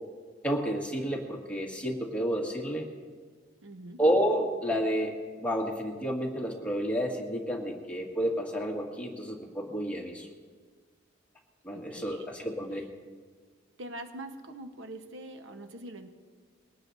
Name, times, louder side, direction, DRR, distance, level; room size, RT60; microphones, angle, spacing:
voice 1, 0.4-2.9 4.0-5.1 5.4-10.3 11.6-12.8, equal, 5° left, -1 dB, 2.0 m, -30 dB
voice 2, 3.6-4.0 11.7-12.3 13.8-16.1, right 1 dB, 85° right, 6 dB, 1.1 m, -43 dB
22.0 x 18.5 x 2.7 m, 1.5 s
head